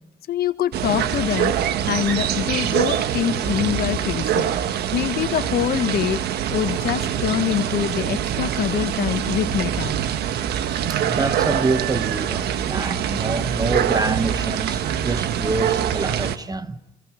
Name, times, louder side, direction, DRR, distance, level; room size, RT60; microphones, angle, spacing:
voice 1, 0.3-1.5 1.9-4.5 4.9-6.2 6.5-9.9, left 10 dB, 60° left, 1.5 m, -24 dB
sound 1, 0.7-16.4, right 9 dB, 70° right, 1.4 m, -24 dB
voice 2, 10.9-16.8, right 3 dB, 20° right, 1.2 m, -26 dB
28.5 x 26.5 x 5.1 m
supercardioid pair, 75°, 18 cm